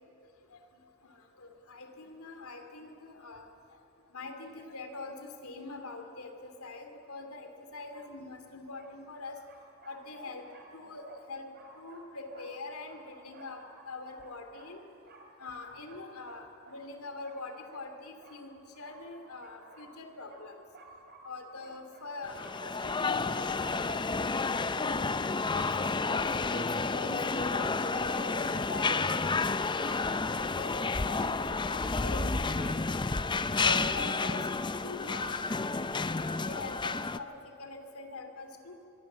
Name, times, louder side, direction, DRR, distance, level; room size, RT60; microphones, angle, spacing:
voice 1, 1.0-3.4 4.1-9.4 9.8-10.5 10.7-11.5 11.8-14.8 15.4-20.6 21.2-24.4 24.8-25.0 25.5-29.1 29.8-30.8 31.0-32.8 33.6-34.5 34.8-36.1 36.5-38.7, left 3 dB, 80° left, 5 dB, 2.9 m, -44 dB
sound 1, 8.0-8.1 8.7-24.6, right 2 dB, 50° right, 3.2 m, -56 dB
sound 2, 22.2-37.2, left 4 dB, 20° left, 0.6 m, -31 dB
25.5 x 22.0 x 7.5 m, 2.8 s
head